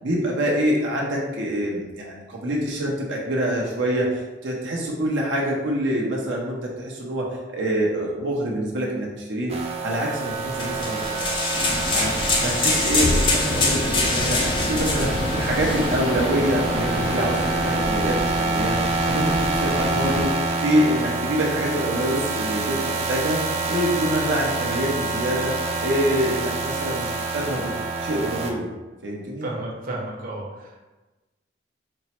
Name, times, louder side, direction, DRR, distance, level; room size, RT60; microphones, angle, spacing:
voice 1, 0.0-11.3 11.9-18.8 19.1-20.3 20.6-23.4 23.7-25.5 25.8-27.7 28.0-28.7 29.0-29.5, equal, 85° right, -3 dB, 0.7 m, -26 dB
sound 1, 9.5-28.5, right 3 dB, 35° right, 0.4 m, -27 dB
sound 2, 10.6-16.0, left 3 dB, 30° left, 0.5 m, -25 dB
sound 3, 11.5-20.2, left 1 dB, 90° left, 0.8 m, -29 dB
voice 2, 29.4-30.8, right 2 dB, 50° right, -3 dB, 0.8 m, -32 dB
4.4 x 2.0 x 4.3 m, 1.2 s
head